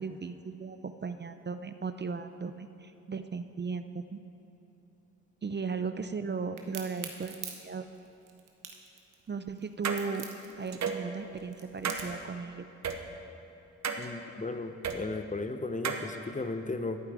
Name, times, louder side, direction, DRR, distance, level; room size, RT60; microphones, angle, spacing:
voice 1, 0.0-4.2 5.4-7.9 9.3-10.3 10.6-12.7, right 5 dB, 35° right, 10 dB, 0.5 m, -36 dB
Crack, 6.6-12.3, right 8 dB, 90° right, 1.0 m, -44 dB
sound 1, 9.8-10.0 10.7-11.0 11.8-12.0 12.8-13.0 13.8-14.1 14.8-15.0 15.8-16.0, right 6 dB, 60° right, 0.9 m, -31 dB
voice 2, 14.0-17.0, left 3 dB, 25° left, 9 dB, 0.7 m, -35 dB
11.5 x 5.8 x 8.4 m, 2.9 s
supercardioid pair, 45°, 31 cm